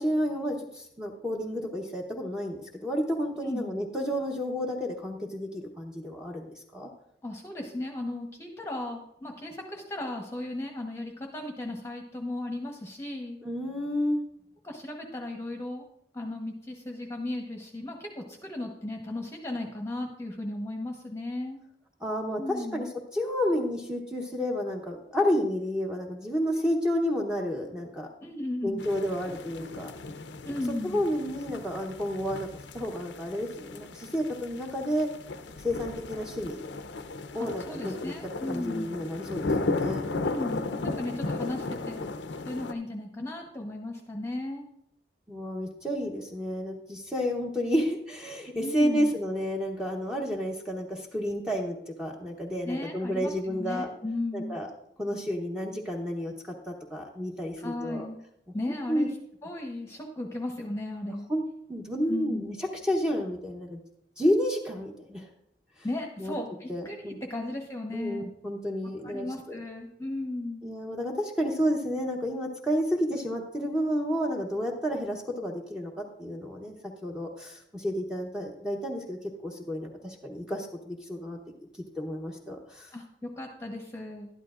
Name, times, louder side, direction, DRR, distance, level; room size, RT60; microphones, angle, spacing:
voice 1, 0.0-6.9 13.4-14.2 22.0-28.1 28.6-29.9 30.8-32.5 32.7-35.1 35.6-36.6 37.3-38.1 38.5-40.0 45.3-53.9 54.3-54.7 55.0-56.3 56.7-58.1 58.9-59.1 61.1-61.4 61.7-63.8 64.2-65.3 66.2-66.4 66.7-67.2 67.9-69.6 70.6-81.4 82.0-82.9, equal, 5° right, 0 dB, 0.9 m, -31 dB
voice 2, 3.4-3.8 7.2-13.4 14.6-15.8 16.1-21.6 22.4-22.9 28.2-28.9 30.4-31.0 37.4-39.0 40.2-42.0 42.5-44.7 48.6-49.1 52.6-54.6 57.6-58.2 58.5-59.1 59.4-61.3 62.1-62.5 65.8-68.2 69.0-70.7 82.9-84.3, left 1 dB, 15° left, 1 dB, 1.0 m, -36 dB
sound 1, 28.8-42.7, left 3 dB, 85° left, 0.6 m, -35 dB
12.0 x 11.0 x 2.5 m, 0.74 s
head